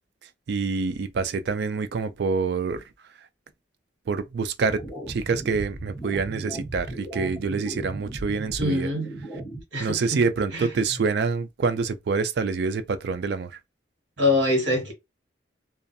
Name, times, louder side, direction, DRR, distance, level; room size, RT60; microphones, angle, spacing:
voice 1, 0.5-2.8 4.1-4.8 5.1-8.9 9.8-13.6, right 4 dB, 60° right, 0.3 m, -26 dB
sound 1, 4.6-9.6, right 1 dB, 10° left, 1.0 m, -37 dB
voice 2, 8.6-9.1 9.7-10.2 10.5-10.7 14.2-14.9, left 2 dB, 80° right, 1.2 m, -24 dB
2.4 x 2.3 x 2.6 m
head